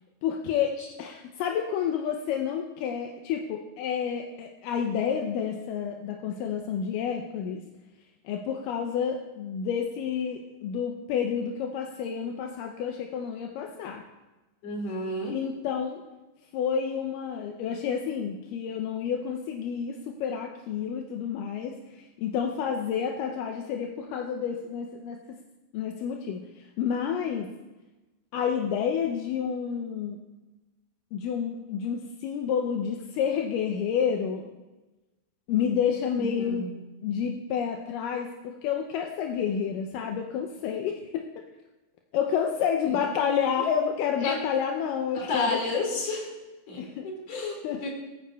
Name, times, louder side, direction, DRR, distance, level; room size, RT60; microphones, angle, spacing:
voice 1, 0.2-7.6 8.3-14.0 15.3-16.0 16.5-25.4 25.7-27.5 28.3-30.2 31.1-34.5 35.5-36.7 37.0-41.2 42.1-45.6 46.8-47.1 47.6-47.9, left 7 dB, 80° left, 2 dB, 2.0 m, -29 dB
voice 2, 14.6-15.4 36.2-36.7 42.9-43.0 44.2-44.4 45.1-46.3 46.7-47.9, left 2 dB, 45° left, 0 dB, 2.9 m, -31 dB
22.0 x 9.2 x 2.3 m, 1.1 s
omnidirectional pair, 4.5 m